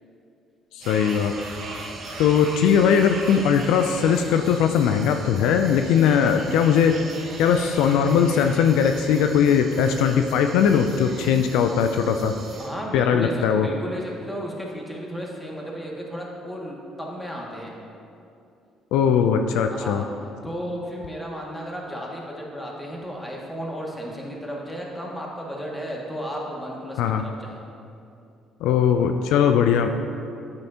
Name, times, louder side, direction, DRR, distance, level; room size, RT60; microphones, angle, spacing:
voice 1, 0.7-1.3 2.2-7.0 7.4-12.3 12.9-13.7 18.9-20.0 27.0-27.2 28.6-29.9, left 7 dB, 75° left, 6 dB, 0.3 m, -20 dB
sound 1, 0.8-12.7, right 2 dB, 55° right, 1.4 m, -39 dB
voice 2, 12.6-17.7 19.7-20.1 20.4-27.6, equal, 10° left, -2 dB, 2.0 m, -34 dB
9.2 x 7.9 x 2.8 m, 2.6 s
hypercardioid pair, 55°, 0 cm